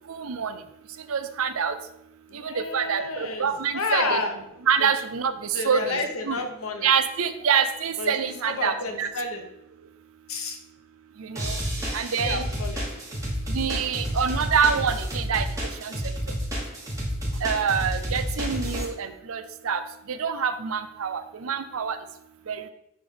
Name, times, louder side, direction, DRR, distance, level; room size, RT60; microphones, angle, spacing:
voice 1, 0.1-0.6 1.1-1.7 2.3-4.2 4.7-6.4 6.8-9.1 11.2-11.6 11.9-12.5 13.5-15.5 15.8-15.9 17.4-19.8 20.1-22.0 22.5-22.7, right 6 dB, 75° right, 11 dB, 0.6 m, -26 dB
voice 2, 2.3-3.5 3.7-4.3 4.8-4.9 5.5-6.9 8.0-8.1 8.5-9.5 10.3-10.6 11.8-11.9 12.2-12.9, left 3 dB, 80° left, 4 dB, 1.1 m, -30 dB
sound 1, 11.4-18.9, equal, 15° right, 1.5 m, -30 dB
10.0 x 3.4 x 3.8 m, 0.83 s
head